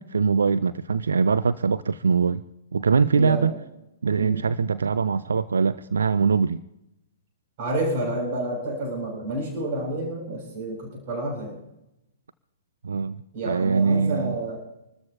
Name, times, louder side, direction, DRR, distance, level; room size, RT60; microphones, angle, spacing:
voice 1, 0.0-2.4 2.7-3.5 4.0-6.6 12.8-13.2 13.5-14.3, right 5 dB, 70° right, 15 dB, 0.6 m, -22 dB
voice 2, 3.2-3.6 4.2-4.4 7.6-11.6 13.3-14.6, right 1 dB, 45° right, 0 dB, 7.1 m, -29 dB
26.5 x 13.5 x 3.0 m, 0.86 s
figure-of-eight pair, 115°, 0 cm